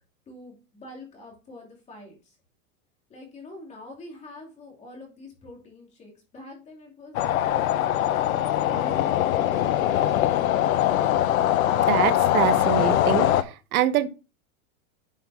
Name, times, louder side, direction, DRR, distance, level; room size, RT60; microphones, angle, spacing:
voice 1, 0.3-2.4 3.1-10.2, left 2 dB, 15° left, 2.9 m, -45 dB
sound 1, 7.1-13.4, left 12 dB, 80° left, 1.0 m, -22 dB
voice 2, 11.9-13.3 13.7-14.1, right 12 dB, 90° right, 1.1 m, -24 dB
11.0 x 5.8 x 3.5 m
supercardioid pair, 170°, 42 cm